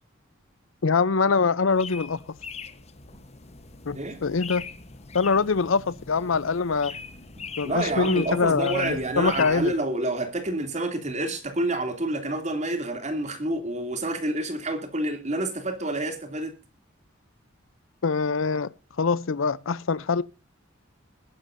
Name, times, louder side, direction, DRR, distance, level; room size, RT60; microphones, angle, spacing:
voice 1, 0.8-2.2 3.9-4.6 5.1-6.9 7.6-9.7 18.0-18.7 19.0-20.2, left 4 dB, 70° left, 0.6 m, -24 dB
sound 1, 1.7-9.8, left 5 dB, 30° left, 1.1 m, -41 dB
voice 2, 7.6-16.5, right 1 dB, 35° right, 2.9 m, -28 dB
20.5 x 11.0 x 2.6 m
head